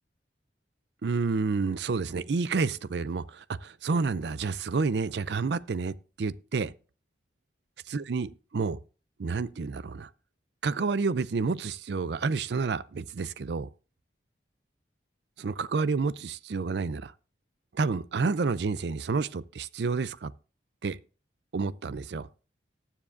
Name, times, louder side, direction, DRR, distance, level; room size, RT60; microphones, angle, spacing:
voice 1, 1.0-6.7 7.9-8.8 9.2-10.1 10.6-13.7 15.4-17.1 17.7-20.3 20.8-21.0 21.5-22.3, right 4 dB, 65° right, 0.4 m, -29 dB
19.0 x 7.3 x 2.5 m
head